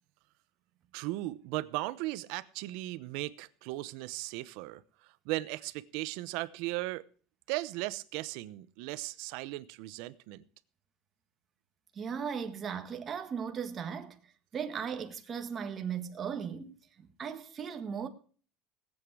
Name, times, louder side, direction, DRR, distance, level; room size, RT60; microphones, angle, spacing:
voice 1, 0.9-4.8 5.3-7.0 7.5-10.4, right 19 dB, 70° right, 0.8 m, -37 dB
voice 2, 11.9-14.2 14.5-18.1, right 7 dB, 25° right, 1.5 m, -37 dB
19.0 x 8.2 x 4.8 m
cardioid pair, 150°, 0 cm